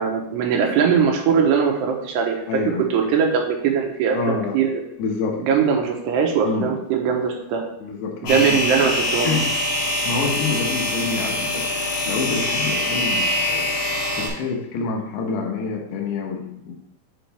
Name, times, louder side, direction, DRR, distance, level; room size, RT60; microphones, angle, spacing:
voice 1, 0.0-2.4 2.9-4.8 5.4-7.7 8.2-9.3, right 6 dB, 80° right, 2 dB, 3.0 m, -21 dB
voice 2, 2.5-2.9 4.1-4.6 5.0-5.4 6.4-6.7 7.8-8.6 9.2-9.5 10.0-13.7 14.2-16.7, left 4 dB, 80° left, 1 dB, 3.2 m, -27 dB
sound 1, 8.3-14.3, left 1 dB, 35° left, 2.4 m, -24 dB
9.4 x 5.1 x 3.4 m, 0.82 s
omnidirectional pair, 4.9 m